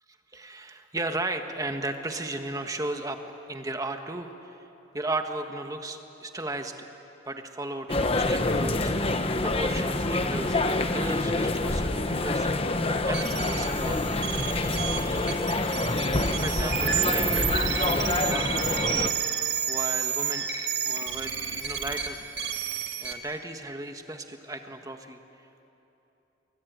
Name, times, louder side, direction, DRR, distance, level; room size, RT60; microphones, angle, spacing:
voice 1, 0.3-3.2 3.5-4.6 4.9-6.8 7.2-12.5 13.0-14.0 14.7-14.8 16.2-20.5 20.8-22.3 23.0-25.2, right 2 dB, 20° right, 5 dB, 1.5 m, -35 dB
sound 1, 7.9-19.1, left 2 dB, 30° left, 1.1 m, -27 dB
sound 2, 13.1-23.1, right 8 dB, 55° right, 2.2 m, -30 dB
28.0 x 22.5 x 9.4 m, 3.0 s
head